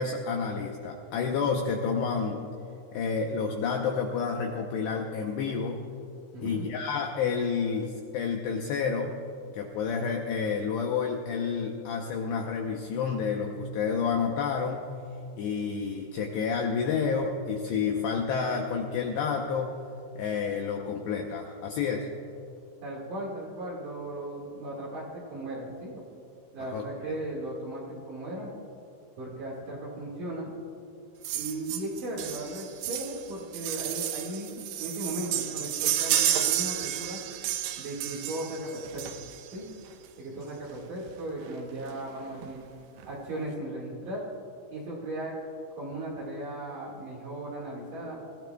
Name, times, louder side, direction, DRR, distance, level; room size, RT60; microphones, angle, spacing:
voice 1, 0.0-2.4 2.9-5.8 6.4-9.1 9.5-14.9 15.4-19.7 20.2-22.1 26.7-27.1, left 5 dB, 80° left, 2 dB, 2.5 m, -29 dB
voice 2, 6.3-6.7 22.8-26.0 26.5-28.6 29.2-30.6 31.3-37.2 37.8-39.0 39.5-39.7 40.2-42.6 43.0-44.2 44.7-45.4 45.8-48.2, right 1 dB, 55° right, -4 dB, 2.7 m, -37 dB
sound 1, 31.2-39.6 40.7-40.8 41.1-41.2 41.4-41.6 41.9-42.5 43.0-43.1, right 11 dB, 90° right, 2.6 m, -31 dB
24.5 x 15.0 x 2.3 m, 2.6 s
omnidirectional pair, 5.8 m